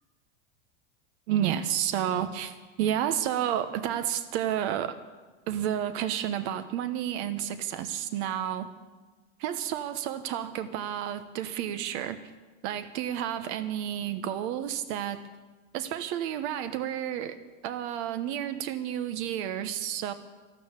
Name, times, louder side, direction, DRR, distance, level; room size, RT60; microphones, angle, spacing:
voice 1, 1.3-5.0 5.5-8.7 9.4-12.2 12.6-15.2 15.7-17.4 17.6-20.1, right 10 dB, 60° right, 10 dB, 1.2 m, -31 dB
12.5 x 12.5 x 8.3 m, 1.3 s
supercardioid pair, 135°, 37 cm